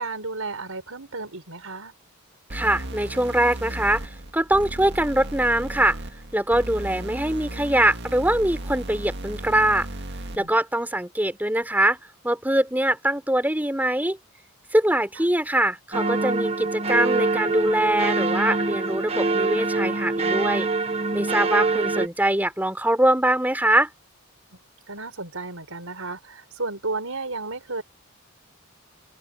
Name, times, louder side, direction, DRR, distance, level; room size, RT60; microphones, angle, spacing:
voice 1, 0.0-1.9 10.4-10.5 24.5-24.6 24.9-27.8, right 3 dB, 65° right, 5.2 m, -33 dB
voice 2, 2.5-6.0 6.3-9.9 10.4-12.0 12.2-14.2 14.7-20.7 21.1-23.9, right 1 dB, 10° right, 3.6 m, -23 dB
sound 1, 2.5-10.5, right 1 dB, 50° right, 2.1 m, -35 dB
sound 2, 15.9-22.1, right 3 dB, 25° right, 1.2 m, -24 dB
head